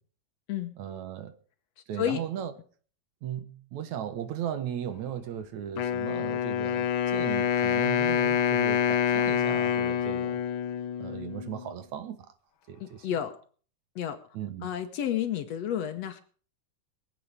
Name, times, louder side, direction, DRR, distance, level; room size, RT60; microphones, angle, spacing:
voice 1, 0.8-1.4 1.9-2.5 3.2-10.4 11.0-12.3 12.7-13.1 14.3-14.7, right 9 dB, 70° right, 2.4 m, -37 dB
Wind instrument woodwind instrument, 5.8-11.7, left 8 dB, 90° left, 1.1 m, -27 dB
voice 2, 12.8-13.4 14.0-14.2 14.6-16.2, left 10 dB, 65° left, 2.0 m, -31 dB
23.5 x 8.5 x 5.0 m
omnidirectional pair, 3.5 m